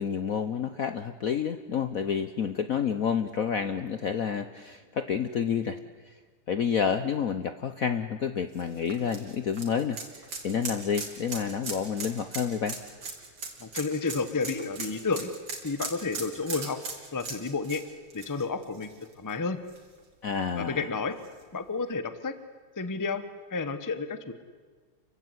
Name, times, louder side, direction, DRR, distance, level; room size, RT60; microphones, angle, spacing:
voice 1, 0.0-5.8 6.5-12.8 20.2-20.9, left 7 dB, 55° left, 10 dB, 1.0 m, -29 dB
sound 1, 8.5-19.3 19.7-19.8 21.2-21.3, right 3 dB, 60° right, 3.7 m, -39 dB
voice 2, 13.6-15.3 15.6-16.8 17.1-17.8 18.1-19.6 20.5-21.2 21.5-22.3 22.8-23.2 23.5-24.3, left 4 dB, 15° left, 12 dB, 0.8 m, -31 dB
28.5 x 16.0 x 9.7 m, 1.5 s
omnidirectional pair, 2.3 m